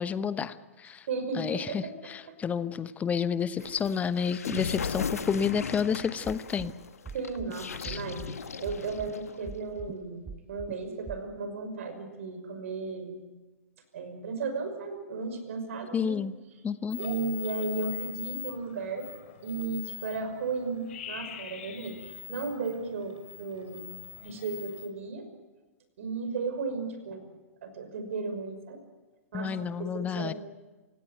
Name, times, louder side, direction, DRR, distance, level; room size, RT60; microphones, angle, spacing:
voice 1, 0.0-1.1 1.3-6.7 7.8-8.0 15.9-16.3 16.6-17.0 29.3-30.3, left 7 dB, 20° left, 15 dB, 1.0 m, -30 dB
voice 2, 1.1-1.9 3.6-3.8 7.1-13.2 13.9-16.2 16.9-19.1 19.4-25.2 26.0-27.2 27.6-28.8 29.3-30.3, right 4 dB, 60° right, 8 dB, 5.7 m, -35 dB
sound 1, 3.6-9.5, left 6 dB, 75° left, 1.3 m, -37 dB
sound 2, 6.2-6.7 7.1-7.5 7.9-8.3 8.7-9.1 9.5-9.9 10.3-10.7 11.1-11.2, right 6 dB, 15° right, 1.2 m, -41 dB
sound 3, 16.9-24.9, left 10 dB, 55° left, 3.7 m, -43 dB
28.0 x 17.5 x 9.1 m, 1.2 s
figure-of-eight pair, 105°, 8 cm